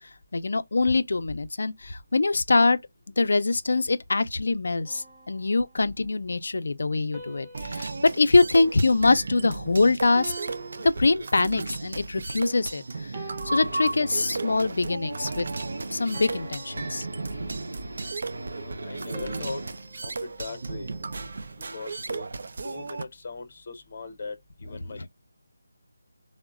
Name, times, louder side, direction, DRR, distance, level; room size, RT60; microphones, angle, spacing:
voice 1, 0.3-2.8 3.2-10.3 10.8-15.5 15.9-17.1 25.0-25.1, left 3 dB, 65° left, 0.4 m, -24 dB
sound 1, 4.8-6.2 7.1-9.6 10.1-11.9 12.4-12.7 13.1-14.7 15.2-15.4 16.1-18.0 19.1-21.5, right 2 dB, 15° right, 0.6 m, -47 dB
sound 2, 7.5-23.0, right 3 dB, 50° right, 0.3 m, -35 dB
sound 3, 13.4-19.8, right 2 dB, 70° right, 0.7 m, -39 dB
voice 2, 18.5-19.6 20.0-20.9 21.7-22.3 22.6-24.3 24.6-25.1, left 3 dB, 35° left, 0.8 m, -39 dB
3.8 x 2.0 x 2.3 m
figure-of-eight pair, 170°, 0 cm